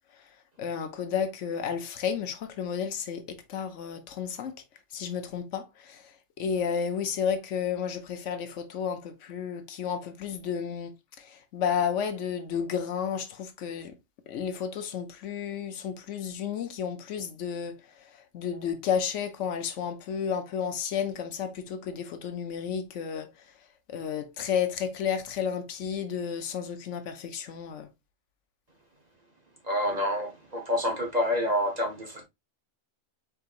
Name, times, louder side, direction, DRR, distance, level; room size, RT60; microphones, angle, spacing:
voice 1, 0.6-4.5 4.9-10.9 11.2-14.0 14.3-23.3 23.9-27.9, left 7 dB, 70° left, 1.0 m, -32 dB
voice 2, 29.6-32.2, left 1 dB, 35° right, 0.9 m, -28 dB
4.6 x 3.9 x 2.4 m
omnidirectional pair, 1.3 m